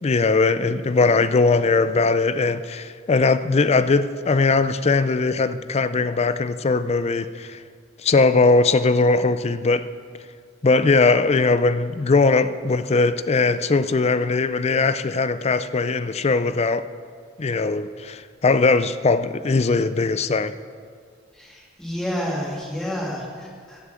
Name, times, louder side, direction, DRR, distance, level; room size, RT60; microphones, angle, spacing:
voice 1, 0.0-7.6 8.0-9.9 10.6-16.8 17.4-20.5, left 3 dB, 30° left, 0.4 m, -20 dB
voice 2, 21.4-23.8, equal, 5° left, 2.5 m, -29 dB
14.5 x 7.0 x 7.6 m
head